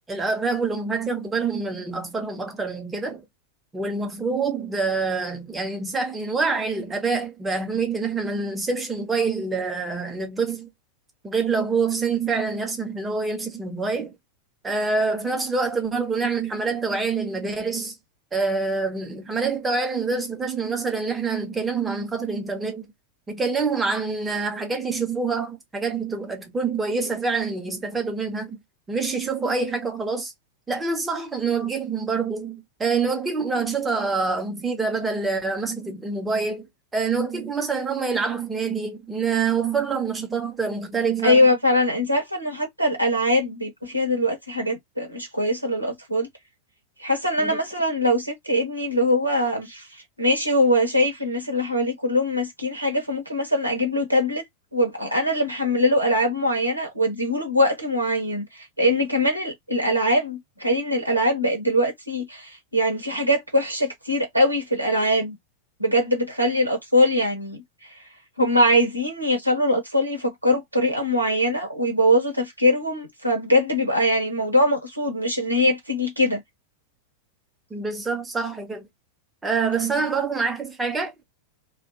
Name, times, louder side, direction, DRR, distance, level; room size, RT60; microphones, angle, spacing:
voice 1, 0.1-3.2 3.7-10.7 11.2-14.1 14.6-18.0 18.3-22.9 23.3-28.6 28.9-30.3 30.7-36.7 36.9-41.5 47.4-47.6 77.7-78.9 79.4-81.2, right 4 dB, 10° right, 0.9 m, -26 dB
voice 2, 41.2-46.3 47.0-49.8 50.2-54.4 54.7-58.4 58.8-65.4 65.8-67.6 68.4-76.4, left 1 dB, 85° right, 1.1 m, -22 dB
2.5 x 2.3 x 2.8 m
figure-of-eight pair, 90°, 0 cm